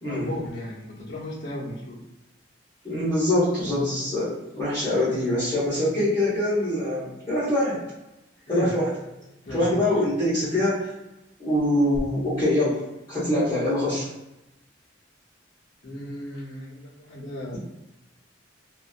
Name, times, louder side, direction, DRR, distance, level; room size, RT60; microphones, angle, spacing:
voice 1, 0.0-2.0 8.5-8.7 9.4-10.0 15.8-17.6, left 1 dB, 60° left, -5 dB, 0.8 m, -36 dB
voice 2, 2.8-7.8 8.5-8.9 9.5-10.9 11.4-12.8 13.1-14.1, left 1 dB, 20° left, -14 dB, 1.1 m, -24 dB
2.7 x 2.5 x 2.4 m, 0.97 s
head